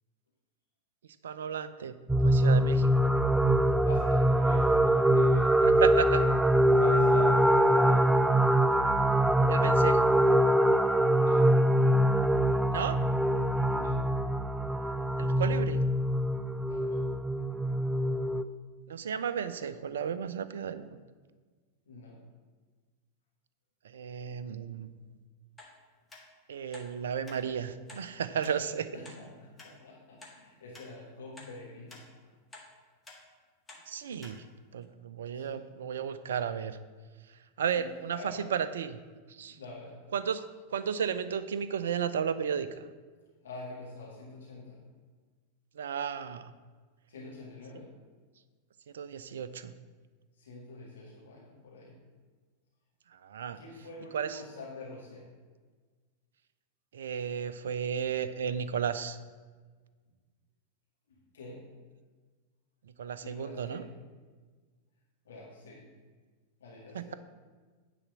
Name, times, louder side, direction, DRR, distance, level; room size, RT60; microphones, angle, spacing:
voice 1, 1.2-1.9 2.2-3.1 5.6-6.3 9.5-10.2 12.7-13.0 15.2-15.8 18.9-21.0 23.8-24.9 26.5-28.9 33.9-34.4 34.7-36.8 37.6-39.0 39.3-39.6 40.1-40.4 40.7-42.8 45.8-46.5 48.9-49.7 53.1-53.6 54.1-54.4 56.9-59.2 63.0-63.8 66.9-67.1, right 7 dB, 65° right, 13 dB, 0.5 m, -33 dB
sound 1, 2.1-18.4, right 1 dB, 5° right, 0.3 m, -24 dB
voice 2, 3.8-6.3 6.7-8.4 11.1-11.5 13.7-14.1 16.7-17.1 21.9-22.2 28.9-32.1 35.3-35.6 37.7-37.8 38.1-38.4 39.5-40.0 43.4-44.8 47.1-47.9 50.4-52.0 53.5-55.3 61.1-61.7 63.2-63.9 65.2-65.8 66.6-67.1, left 3 dB, 65° left, -4 dB, 1.8 m, -45 dB
sound 2, 25.6-25.7 26.1-26.2 26.7-26.9 27.3-27.4 27.9-28.0 28.4-28.6 29.0-29.2 29.6-29.7 30.2-30.4 30.7-30.9 31.4-31.5 31.9-32.0 32.5-32.7 33.0-33.2 33.7-33.8 34.2-34.4 34.8-34.9, left 2 dB, 10° left, 1.6 m, -50 dB
9.7 x 4.2 x 7.3 m, 1.4 s
figure-of-eight pair, 90°, 0 cm